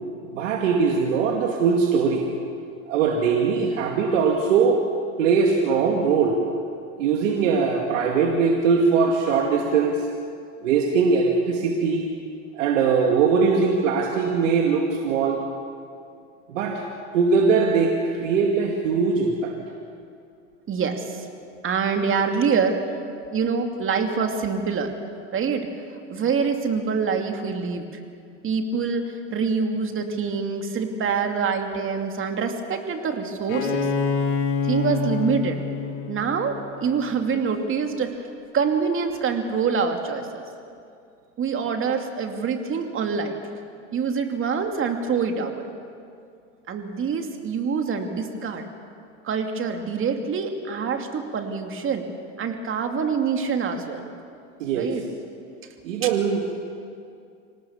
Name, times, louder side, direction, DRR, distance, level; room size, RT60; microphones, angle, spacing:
voice 1, 0.3-2.3 2.9-4.8 5.2-6.4 7.0-10.0 10.6-12.0 12.5-15.4 16.5-16.8 17.1-19.5 54.6-54.9 55.8-56.5, right 5 dB, 80° right, 1 dB, 2.4 m, -21 dB
voice 2, 20.7-21.3 21.6-22.8 23.3-24.9 25.3-25.7 26.1-28.0 28.4-33.9 34.6-35.6 36.1-38.3 38.5-40.4 41.4-43.4 43.9-45.7 46.7-48.7 49.2-52.0 52.4-54.0 54.7-55.0, right 5 dB, 35° right, 5 dB, 2.6 m, -25 dB
Bowed string instrument, 33.5-37.1, left 5 dB, 80° left, 3.1 m, -26 dB
25.5 x 18.5 x 7.2 m, 2.4 s
hypercardioid pair, 105°, 37 cm